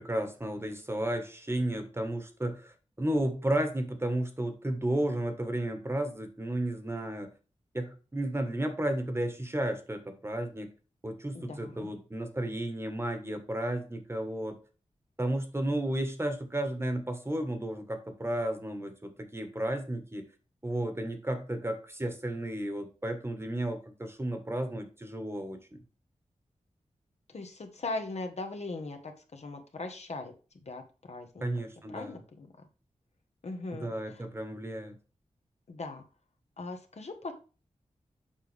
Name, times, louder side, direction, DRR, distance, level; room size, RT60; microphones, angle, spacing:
voice 1, 0.0-7.3 7.7-10.7 11.0-14.6 15.2-20.3 20.6-25.8 31.4-32.2 33.7-34.9, right 1 dB, 20° right, 7 dB, 1.4 m, -33 dB
voice 2, 11.3-11.9 27.3-30.3 30.6-31.5 31.9-32.5 33.4-34.2 35.7-36.0 36.6-37.3, left 2 dB, 65° left, 4 dB, 1.4 m, -39 dB
7.3 x 5.3 x 3.4 m, 0.34 s
wide cardioid pair, 80°, 12 cm